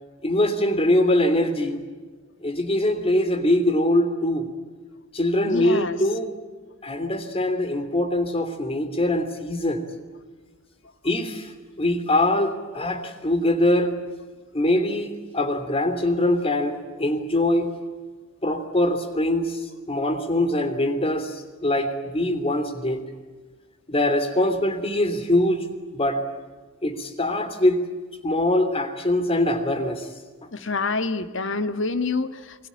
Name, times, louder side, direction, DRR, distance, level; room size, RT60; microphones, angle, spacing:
voice 1, 0.2-1.8 2.4-4.5 5.1-6.3 6.8-9.8 11.0-13.9 14.5-17.7 18.4-23.0 23.9-25.7 25.9-26.2 26.8-27.8 28.2-30.1, left 1 dB, 30° left, 10 dB, 3.2 m, -23 dB
voice 2, 5.5-6.0 30.5-32.7, left 3 dB, 65° left, 11 dB, 1.6 m, -27 dB
28.0 x 22.0 x 8.6 m, 1.3 s
head